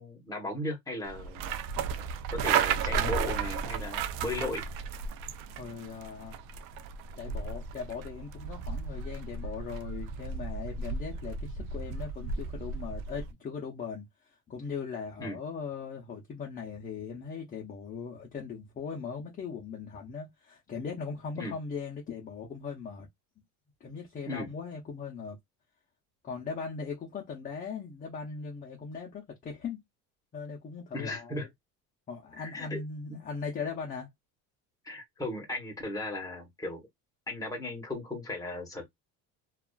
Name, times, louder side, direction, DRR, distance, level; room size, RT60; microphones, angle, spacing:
voice 1, 0.0-1.7 2.3-4.6 15.2-15.4 21.3-21.5 24.3-24.5 30.9-31.5 32.4-32.8 33.1-33.2 34.8-36.9 37.3-38.9, left 2 dB, 10° left, 0.9 m, -36 dB
sound 1, 1.1-13.3, right 6 dB, 80° right, 0.5 m, -34 dB
voice 2, 5.5-6.4 7.2-23.1 23.8-25.4 26.2-29.8 30.3-31.5 32.1-34.1, left 5 dB, 25° left, 0.6 m, -39 dB
2.4 x 2.4 x 2.2 m
cardioid pair, 130°, 32 cm